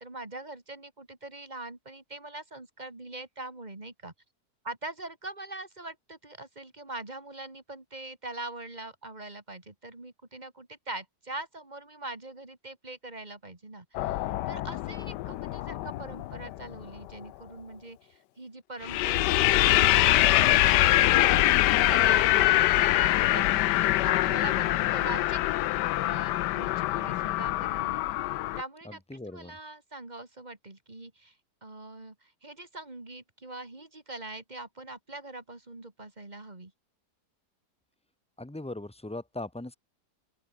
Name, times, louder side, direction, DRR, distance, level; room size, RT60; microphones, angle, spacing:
voice 1, 0.0-4.1 4.6-25.4 25.8-28.0 28.3-29.0 29.3-31.3 31.6-36.7, right 2 dB, 25° right, 2.7 m, -42 dB
sound 1, 13.9-16.8 18.8-28.6, left 16 dB, 90° left, 1.2 m, -24 dB
voice 2, 28.8-29.6 38.4-39.8, left 2 dB, 5° left, 0.7 m, -39 dB
open air
omnidirectional pair, 1.8 m